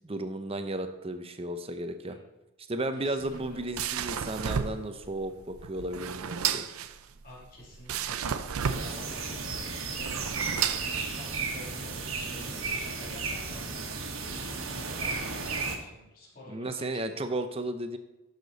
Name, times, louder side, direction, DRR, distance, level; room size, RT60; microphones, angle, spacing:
voice 1, 0.0-2.2 2.7-6.7 16.5-18.0, right 1 dB, 25° right, 8 dB, 0.7 m, -34 dB
voice 2, 3.0-3.6 7.2-12.6 12.8-17.3, left 1 dB, 40° left, -5 dB, 2.9 m, -48 dB
sound 1, 3.2-11.5, right 8 dB, 90° right, 0.5 m, -33 dB
sound 2, 8.6-15.8, right 4 dB, 75° right, 1.4 m, -34 dB
11.5 x 6.7 x 4.0 m, 1.0 s
head